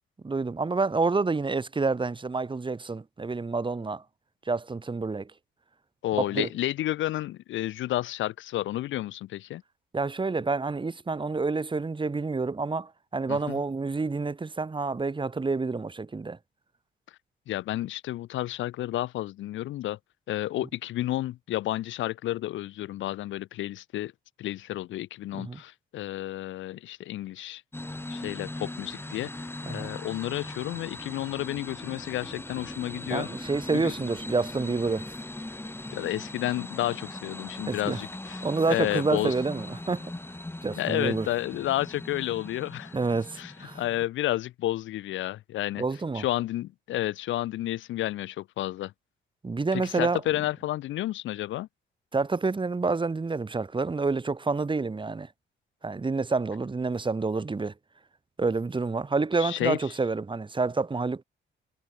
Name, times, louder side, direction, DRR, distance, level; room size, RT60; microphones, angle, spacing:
voice 1, 0.2-4.0 4.5-5.3 6.2-6.5 9.9-16.4 25.3-25.6 29.7-29.9 33.1-35.0 37.7-38.0 38.4-40.1 40.6-41.3 42.9-43.8 45.8-46.2 49.4-50.2 52.1-55.3 55.8-57.7 58.4-61.2, right 3 dB, 25° right, 2.7 m, -28 dB
voice 2, 6.0-9.6 13.3-13.6 17.5-20.0 20.3-24.1 24.4-27.6 28.1-33.3 33.7-33.9 35.9-38.4 38.7-39.3 40.8-43.0 43.4-45.8 46.1-48.9 49.7-51.7 59.4-59.8, left 14 dB, 75° left, 0.7 m, -31 dB
sound 1, 27.7-44.1, left 2 dB, 10° left, 5.9 m, -40 dB
cardioid pair, 90°, 20 cm